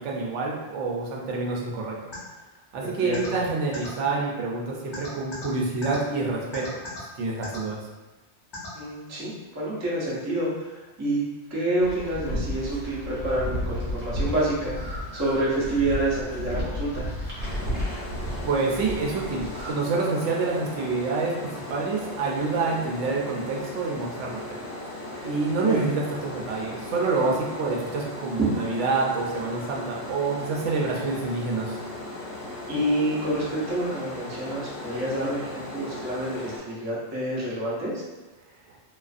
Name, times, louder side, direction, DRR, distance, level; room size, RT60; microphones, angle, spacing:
voice 1, 0.0-2.0 2.7-6.7 7.2-7.8 18.4-21.3 21.7-24.6 25.2-31.8, right 3 dB, 90° right, -2 dB, 0.9 m, -27 dB
sound 1, 2.1-2.2 3.1-3.3 3.7-3.9 4.9-5.5 5.8-6.0 6.5-7.0 7.4-7.6 8.5-8.7, left 3 dB, 30° left, 0.6 m, -37 dB
voice 2, 2.8-3.4 8.7-11.2 11.5-17.1 25.5-25.9 28.4-28.5 32.7-37.9, right 1 dB, 25° right, -7 dB, 0.4 m, -28 dB
sound 2, 11.8-19.7, equal, 60° right, 1.0 m, -32 dB
sound 3, 17.4-36.6, left 1 dB, 65° left, 0.7 m, -37 dB
2.4 x 2.4 x 2.4 m, 1.1 s
omnidirectional pair, 1.2 m